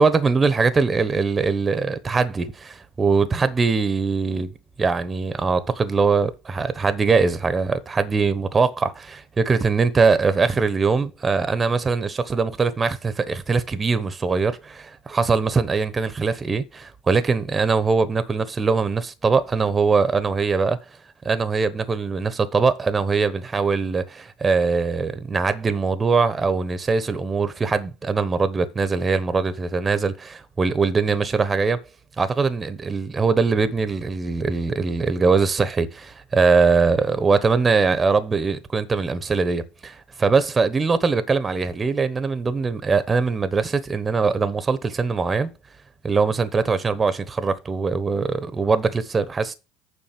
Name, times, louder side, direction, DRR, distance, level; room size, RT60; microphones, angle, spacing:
voice 1, 0.0-4.5 4.8-20.8 21.2-31.8 32.2-45.5 46.0-49.5, right 4 dB, 25° right, 1.1 m, -22 dB
7.4 x 5.2 x 6.8 m
hypercardioid pair, 80°, 0 cm